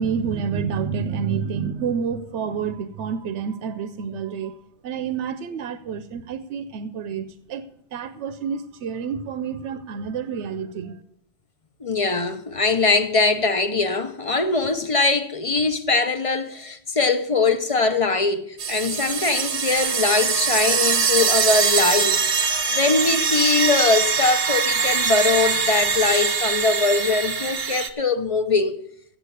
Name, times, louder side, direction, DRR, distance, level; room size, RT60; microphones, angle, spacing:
voice 1, 0.0-4.5 4.8-7.6 7.9-11.0, right 6 dB, 90° right, 0.9 m, -28 dB
voice 2, 11.8-22.2 22.7-28.8, left 3 dB, 35° left, 0.7 m, -22 dB
sound 1, 18.6-27.9, right 5 dB, 55° right, 0.9 m, -22 dB
8.2 x 7.5 x 8.2 m
omnidirectional pair, 1.1 m